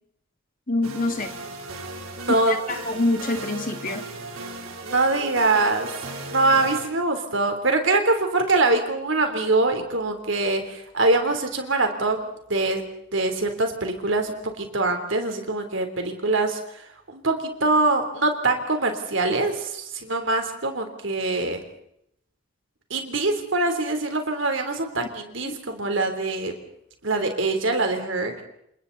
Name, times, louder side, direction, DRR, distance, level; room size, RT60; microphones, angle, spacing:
voice 1, 0.7-1.3 2.3-4.0 25.4-25.5, left 2 dB, 40° left, 6 dB, 2.1 m, -26 dB
sound 1, 0.8-6.9, right 2 dB, 80° right, 3.4 m, -36 dB
voice 2, 2.2-2.6 4.8-5.9 6.3-12.8 13.1-21.6 22.9-26.5 27.0-28.4, right 2 dB, 60° right, 5 dB, 3.5 m, -24 dB
29.0 x 27.0 x 4.1 m, 0.73 s
head